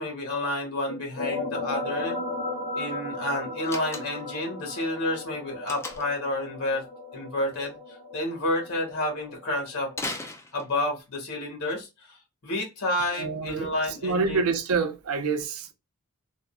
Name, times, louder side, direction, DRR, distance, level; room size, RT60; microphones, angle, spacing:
voice 1, 0.0-2.2 2.7-6.8 7.1-9.9 10.5-12.2 12.4-14.5, left 1 dB, 75° left, 1.3 m, -30 dB
sound 1, 0.9-10.3, left 2 dB, 45° left, 0.8 m, -36 dB
Slam, 3.6-4.4 5.7-6.2 9.9-11.0, left 2 dB, 10° left, 0.3 m, -36 dB
voice 2, 13.2-13.7 14.0-15.7, right 4 dB, 75° right, 0.5 m, -27 dB
3.6 x 2.1 x 2.3 m
head